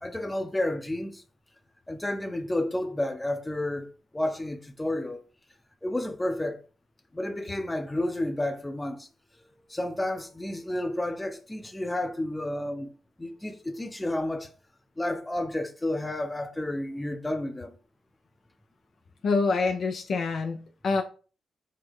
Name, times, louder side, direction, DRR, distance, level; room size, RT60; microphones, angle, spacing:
voice 1, 0.0-1.2 1.9-5.2 5.8-6.6 7.1-9.1 9.7-12.9 13.2-14.5 15.0-17.8, left 1 dB, 15° left, 0.7 m, -31 dB
voice 2, 19.2-21.0, left 4 dB, 60° left, 0.4 m, -26 dB
4.3 x 2.1 x 3.5 m
hypercardioid pair, 40°, 0 cm